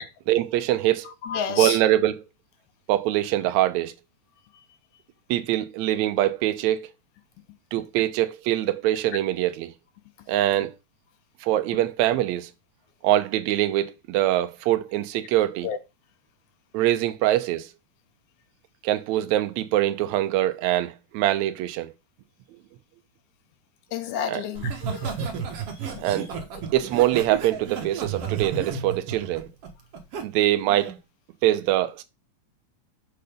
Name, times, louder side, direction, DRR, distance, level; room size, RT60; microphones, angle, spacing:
voice 1, 0.0-1.1 1.5-2.2 2.9-3.9 5.3-6.9 7.7-9.7 10.3-10.7 11.4-12.5 13.0-15.7 16.7-17.7 18.8-21.9 24.3-24.4 26.0-26.3 26.7-29.5 30.2-30.9 31.4-32.0, right 14 dB, 75° right, 1.9 m, -23 dB
voice 2, 1.2-1.8 15.6-15.8 23.9-25.1 26.0-26.1, left 8 dB, 75° left, 2.2 m, -30 dB
Laughter, 24.5-30.2 30.7-31.0, right 6 dB, 55° right, 2.1 m, -32 dB
6.8 x 4.1 x 5.1 m
omnidirectional pair, 3.6 m